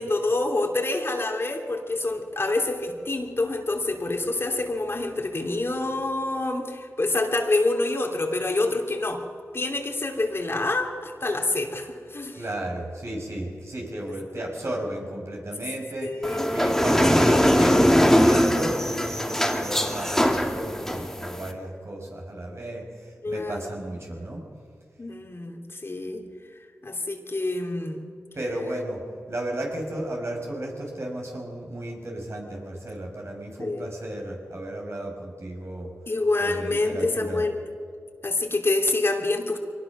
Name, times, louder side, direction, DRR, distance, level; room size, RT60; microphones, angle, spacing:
voice 1, 0.0-9.2 9.5-12.4 14.3-14.4 16.0-16.5 23.2-23.6 25.0-26.2 26.8-28.1 33.6-33.9 36.1-37.6 38.2-39.6, left 2 dB, 45° left, 2 dB, 2.9 m, -27 dB
voice 2, 12.3-24.4 28.3-29.0 29.3-35.9 36.4-37.4, right 1 dB, 55° right, 0 dB, 5.9 m, -34 dB
sound 1, 16.2-21.5, equal, 5° left, 2.3 m, -21 dB
23.0 x 19.0 x 6.1 m, 2.2 s
cardioid pair, 40°, 6 cm